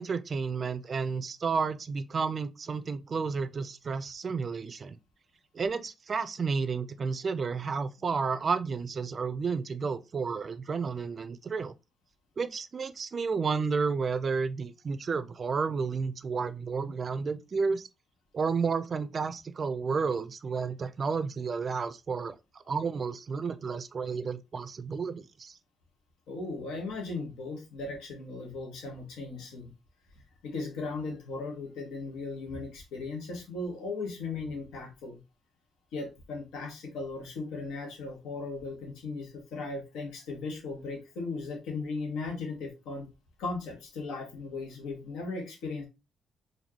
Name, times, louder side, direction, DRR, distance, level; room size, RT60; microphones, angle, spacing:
voice 1, 0.0-5.0 5.5-11.7 12.4-17.9 18.3-22.4 22.7-25.6, right 5 dB, 40° right, 0.4 m, -31 dB
voice 2, 26.3-29.7 30.4-35.2 35.9-43.1 43.4-45.9, left 3 dB, 90° left, 1.2 m, -37 dB
4.3 x 2.6 x 2.8 m
cardioid pair, 90°, 0 cm